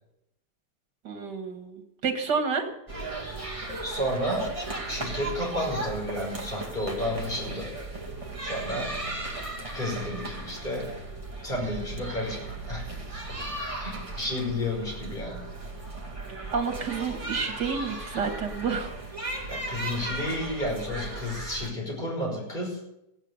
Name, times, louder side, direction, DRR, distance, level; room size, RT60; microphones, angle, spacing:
voice 1, 1.0-2.7 16.5-18.9, right 5 dB, 80° right, 5 dB, 2.4 m, -29 dB
sound 1, 2.9-21.7, right 2 dB, 20° right, 2.1 m, -36 dB
voice 2, 3.8-4.5 4.9-7.7 8.4-8.9 9.7-10.9 11.4-12.8 13.8-15.4 19.5-22.8, left 1 dB, 25° left, -2 dB, 5.5 m, -31 dB
15.5 x 9.7 x 6.8 m, 0.84 s
omnidirectional pair, 1.8 m